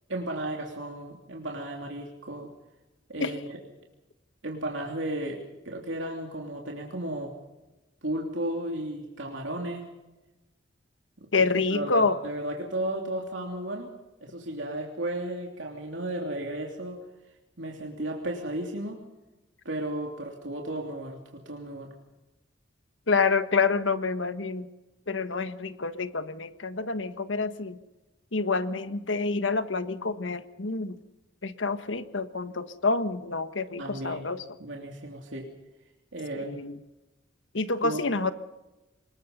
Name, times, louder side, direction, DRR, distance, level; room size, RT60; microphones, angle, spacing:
voice 1, 0.1-2.5 3.1-3.6 4.4-7.3 8.0-9.9 11.7-13.9 14.2-17.0 17.6-19.0 19.6-21.9 33.8-34.2 34.6-35.5 36.1-36.6 37.8-38.0, right 1 dB, 80° right, 0 dB, 3.1 m, -34 dB
voice 2, 11.3-12.2 23.1-24.7 25.1-27.8 28.3-31.0 31.4-34.4 36.3-36.8 37.5-38.3, left 4 dB, 85° left, 11 dB, 1.4 m, -27 dB
25.5 x 21.0 x 5.5 m, 1.0 s
head